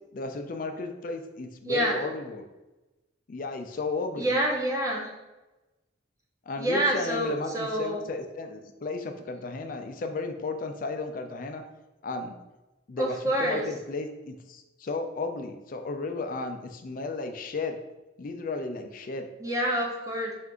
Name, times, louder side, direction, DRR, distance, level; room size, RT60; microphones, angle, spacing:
voice 1, 0.1-2.5 3.3-4.3 6.5-11.6 12.0-12.4 12.9-17.8 18.2-19.3, left 3 dB, 45° left, 6 dB, 0.4 m, -34 dB
voice 2, 1.6-2.0 4.2-5.1 6.6-8.0 13.0-13.7 19.4-20.3, right 1 dB, 20° right, -2 dB, 0.8 m, -27 dB
4.4 x 2.5 x 3.6 m, 1.1 s
head